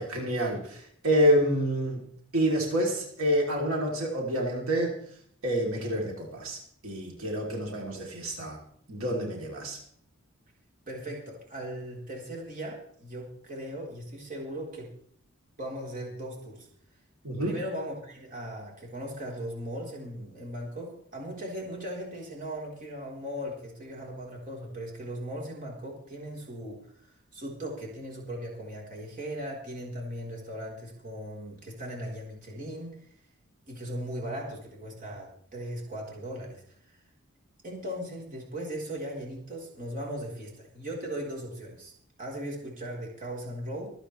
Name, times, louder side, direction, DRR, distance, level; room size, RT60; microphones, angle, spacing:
voice 1, 0.0-2.0 2.3-5.0 5.4-6.6 6.8-8.6 8.9-9.8 17.2-17.6, equal, 85° right, -1 dB, 3.5 m, -27 dB
voice 2, 10.9-14.9 15.6-16.7 17.4-32.9 33.7-37.0 37.6-41.9 42.2-43.9, equal, 40° right, -2 dB, 4.3 m, -38 dB
25.0 x 9.0 x 3.4 m, 0.62 s
head